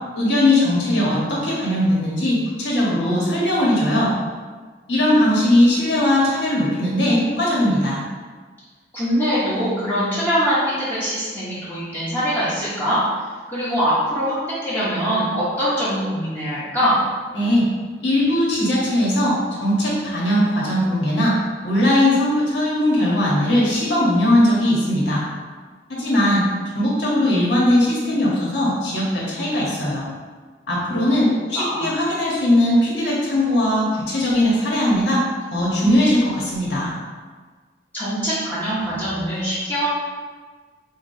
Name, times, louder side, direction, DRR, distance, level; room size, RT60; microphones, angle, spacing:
voice 1, 0.1-4.1 4.9-8.0 17.3-17.7 18.0-21.4 21.6-25.2 26.0-26.4 26.7-30.0 30.7-35.2 35.5-36.9, left 1 dB, 85° left, -6 dB, 1.3 m, -19 dB
voice 2, 8.9-13.0 13.5-17.0 30.9-31.1 31.5-31.9 37.9-39.9, equal, 10° left, -11 dB, 0.9 m, -23 dB
5.8 x 2.4 x 2.7 m, 1.5 s
head